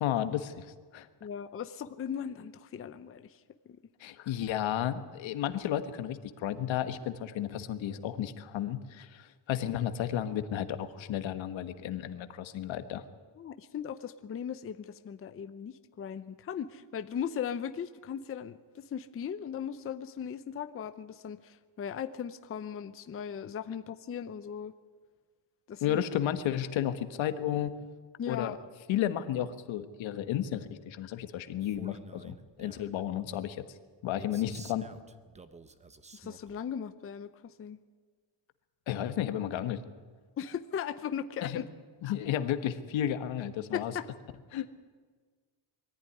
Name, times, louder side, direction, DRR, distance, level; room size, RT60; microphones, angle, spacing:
voice 1, 0.0-1.1 4.0-13.0 25.8-27.7 28.3-28.5 28.9-33.6 34.0-34.9 38.9-39.8 41.4-41.6 42.0-43.9 44.5-44.7, left 11 dB, 80° left, 10 dB, 1.5 m, -33 dB
voice 2, 1.2-3.4 13.4-24.7 25.7-26.0 28.2-28.6 36.1-37.8 40.4-41.7 43.7-44.1, left 8 dB, 30° left, 10 dB, 0.6 m, -38 dB
Male speech man speaking, 31.6-32.9 34.2-36.6, right 3 dB, 15° right, 0.8 m, -51 dB
22.0 x 14.5 x 10.0 m, 1.5 s
cardioid pair, 170°, 45 cm